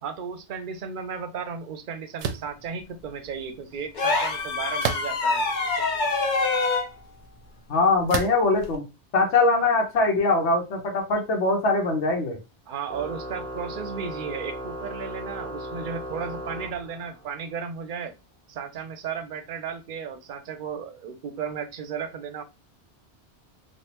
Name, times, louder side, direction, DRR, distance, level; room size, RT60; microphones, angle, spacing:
voice 1, 0.0-5.5 6.2-6.3 12.7-18.1 18.5-22.4, right 6 dB, 55° right, 8 dB, 0.6 m, -34 dB
sound 1, 2.2-2.5 4.8-5.4 6.1-6.2 8.1-8.5, right 6 dB, 85° right, 0.9 m, -29 dB
sound 2, 4.0-6.9 8.6-8.8, left 3 dB, 50° left, 0.7 m, -25 dB
voice 2, 7.7-8.8 9.1-12.4, left 3 dB, 85° left, 1 dB, 1.2 m, -22 dB
Organ, 12.9-17.4, right 1 dB, 5° left, 0.4 m, -36 dB
3.3 x 2.4 x 2.9 m, 0.26 s
omnidirectional pair, 1.1 m